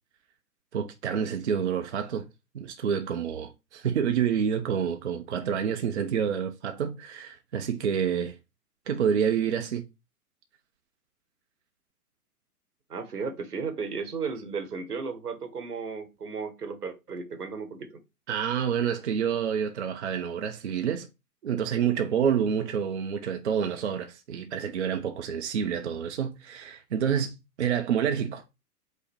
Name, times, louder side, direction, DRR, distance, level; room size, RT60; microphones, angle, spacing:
voice 1, 0.7-2.3 2.5-8.4 8.9-9.8 18.3-21.1 21.4-28.6, right 8 dB, 50° right, 0.6 m, -28 dB
voice 2, 12.9-18.0, right 5 dB, 75° right, 1.0 m, -34 dB
5.2 x 2.1 x 4.3 m
figure-of-eight pair, 120°, 47 cm